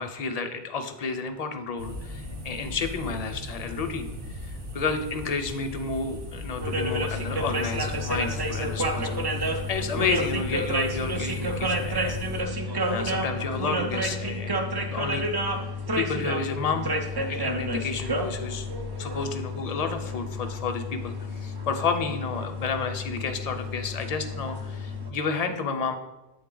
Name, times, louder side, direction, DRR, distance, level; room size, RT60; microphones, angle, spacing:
voice 1, 0.0-4.1 4.4-12.5 12.9-15.2 15.6-15.7 15.9-16.9 17.3-18.7 19.0-25.9, left 4 dB, 45° left, 7 dB, 0.6 m, -31 dB
sound 1, 1.8-12.4, left 1 dB, 60° right, 1.1 m, -38 dB
sound 2, 6.6-25.1, equal, 35° right, 0.4 m, -30 dB
7.8 x 3.8 x 3.8 m, 1.1 s
omnidirectional pair, 1.1 m